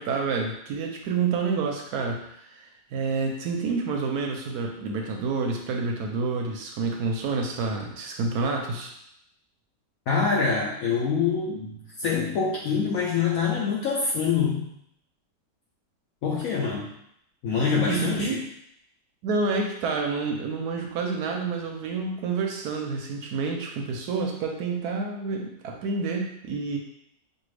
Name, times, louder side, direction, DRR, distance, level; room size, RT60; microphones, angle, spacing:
voice 1, 0.0-8.9 17.9-18.4 19.2-26.8, right 4 dB, 70° right, 2 dB, 1.0 m, -28 dB
voice 2, 10.1-14.7 16.2-16.9 17.4-18.4, left 5 dB, 70° left, -3 dB, 0.8 m, -25 dB
5.4 x 2.5 x 3.2 m, 0.76 s
omnidirectional pair, 1.9 m